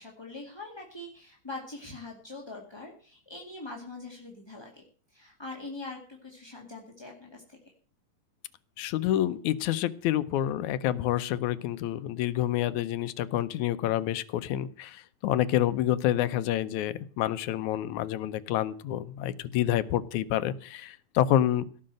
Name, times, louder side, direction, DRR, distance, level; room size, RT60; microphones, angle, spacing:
voice 1, 0.0-7.6, left 2 dB, 10° left, -1 dB, 1.5 m, -43 dB
voice 2, 8.8-21.7, left 12 dB, 75° left, 13 dB, 2.0 m, -28 dB
17.0 x 6.6 x 7.6 m, 0.42 s
omnidirectional pair, 3.7 m